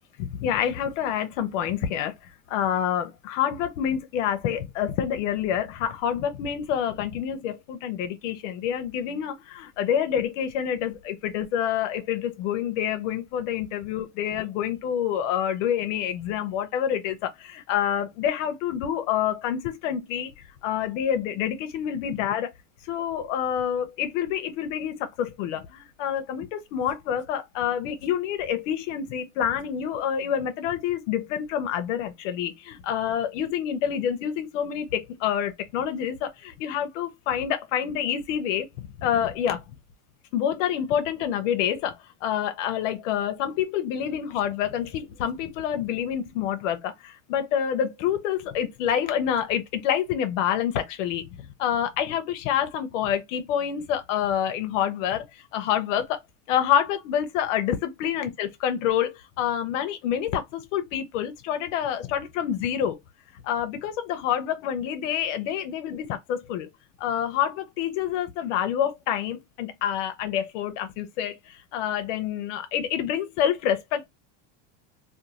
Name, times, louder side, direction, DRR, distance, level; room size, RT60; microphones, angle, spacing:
voice 1, 0.2-2.1 2.5-20.3 20.6-22.5 22.8-39.6 40.3-56.2 56.5-63.0 63.4-66.7 67.0-74.1, left 9 dB, 90° left, 0.7 m, -27 dB
2.5 x 2.2 x 2.9 m
cardioid pair, 155°, 36 cm